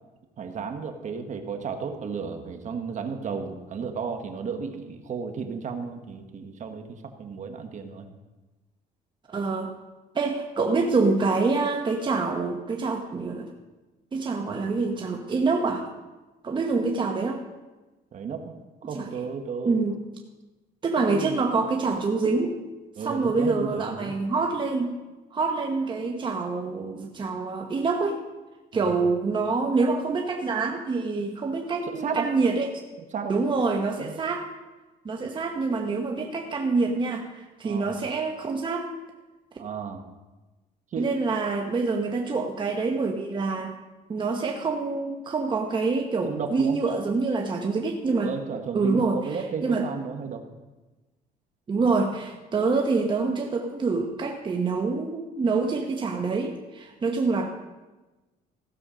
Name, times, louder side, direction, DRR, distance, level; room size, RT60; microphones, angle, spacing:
voice 1, 0.4-8.1 18.1-18.5 18.8-19.8 21.0-21.4 23.0-24.1 28.7-29.0 31.8-32.3 33.1-33.4 33.9-34.1 37.6-38.0 39.6-40.0 40.9-41.1 46.3-46.8 48.2-50.5, right 5 dB, 45° right, 6 dB, 1.3 m, -33 dB
voice 2, 9.3-9.7 10.1-13.5 14.1-15.8 16.4-17.4 18.9-19.1 19.6-20.0 20.8-22.6 23.0-24.9 25.3-28.2 28.7-32.7 33.3-34.5 35.0-38.9 41.0-43.7 44.1-48.3 48.7-49.2 49.6-49.8 51.7-57.5, right 4 dB, 30° right, 2 dB, 1.0 m, -26 dB
15.5 x 7.1 x 5.1 m, 1.2 s
cardioid pair, 110°, 17 cm